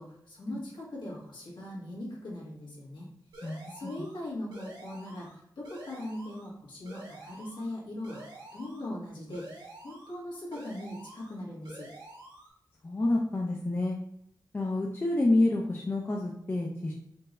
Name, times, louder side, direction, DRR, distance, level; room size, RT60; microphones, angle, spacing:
voice 1, 0.0-3.1 3.7-11.9, left 1 dB, 85° left, -5 dB, 1.6 m, -40 dB
sound 1, 3.3-4.2 4.5-5.4 5.6-6.5 6.8-7.7 8.0-8.9 9.3-10.2 10.5-11.4 11.6-12.5, right 1 dB, 70° right, 1.4 m, -48 dB
voice 2, 12.8-14.0 14.5-16.9, left 2 dB, 30° left, -2 dB, 0.5 m, -28 dB
4.4 x 2.7 x 3.1 m, 0.76 s
wide cardioid pair, 110°, 8 cm